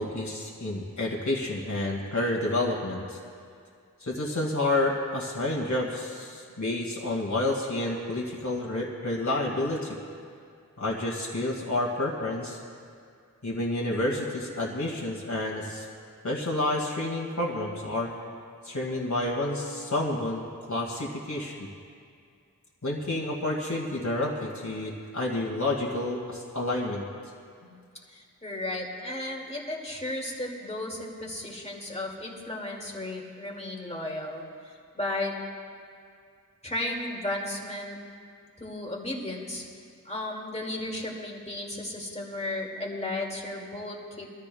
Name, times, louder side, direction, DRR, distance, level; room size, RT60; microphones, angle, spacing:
voice 1, 0.0-3.2 4.0-10.0 10.8-12.6 13.4-15.9 16.2-18.1 18.6-21.7 22.8-27.0, left 2 dB, 60° left, -3 dB, 2.0 m, -29 dB
voice 2, 28.1-35.3 36.6-38.0 38.6-39.6 40.0-44.3, left 1 dB, 20° left, -2 dB, 2.3 m, -34 dB
24.5 x 14.0 x 2.3 m, 2.3 s
wide cardioid pair, 55°, 33 cm